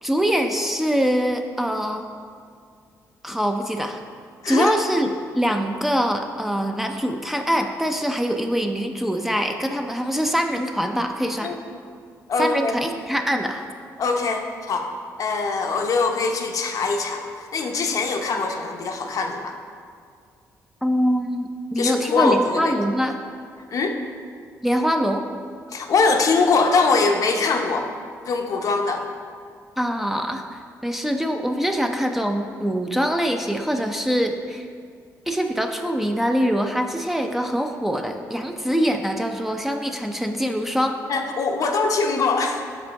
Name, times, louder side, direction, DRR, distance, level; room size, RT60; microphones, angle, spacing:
voice 1, 0.0-2.0 3.2-4.0 4.5-5.1 5.3-11.5 12.4-13.6 20.8-23.2 24.6-25.2 29.8-34.7 35.3-41.0, equal, 5° right, 4 dB, 0.5 m, -24 dB
voice 2, 4.4-4.8 11.4-11.6 12.3-12.8 14.0-14.9 15.2-19.5 21.8-22.7 23.7-24.0 25.7-27.9 28.3-29.0 41.1-42.7, left 4 dB, 60° left, 3 dB, 0.7 m, -22 dB
6.1 x 5.1 x 4.6 m, 2.1 s
cardioid pair, 80°, 7 cm